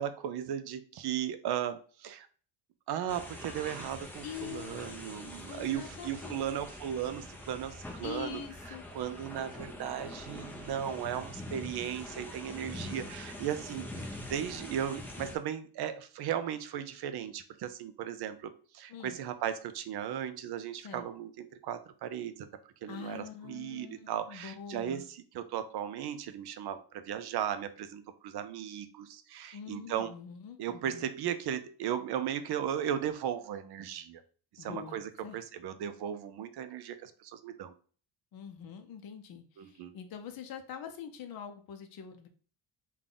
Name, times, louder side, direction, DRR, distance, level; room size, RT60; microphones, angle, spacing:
voice 1, 0.0-2.3 2.9-8.4 8.9-22.5 22.8-30.1 30.6-34.2 34.5-37.7 39.6-39.9, right 9 dB, 55° right, 10 dB, 0.5 m, -36 dB
sound 1, 3.1-15.4, left 1 dB, 5° left, 0.5 m, -44 dB
voice 2, 4.2-6.5 8.0-8.8 18.9-19.2 20.8-21.0 22.9-25.1 29.5-31.1 34.6-35.0 35.2-35.4 38.3-42.3, left 7 dB, 45° left, 6 dB, 0.6 m, -44 dB
3.6 x 2.4 x 3.8 m, 0.41 s
cardioid pair, 140°, 48 cm